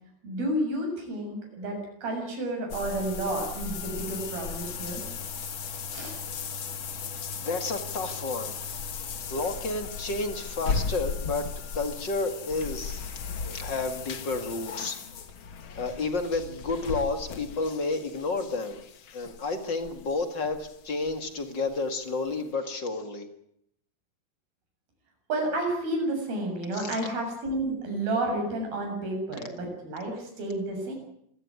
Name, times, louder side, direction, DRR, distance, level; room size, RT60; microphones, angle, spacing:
voice 1, 0.2-5.0 5.9-6.2 25.3-31.0, right 1 dB, 60° right, 3 dB, 9.0 m, -31 dB
sound 1, 2.7-21.4 21.7-21.8 22.3-22.4, left 5 dB, 85° left, 1.1 m, -37 dB
voice 2, 7.4-8.8 9.3-11.5 11.7-13.1 13.4-15.0 15.7-18.8 19.1-23.3 26.7-26.9, left 3 dB, 40° left, 7 dB, 1.8 m, -31 dB
27.0 x 16.5 x 9.7 m, 0.73 s
omnidirectional pair, 4.7 m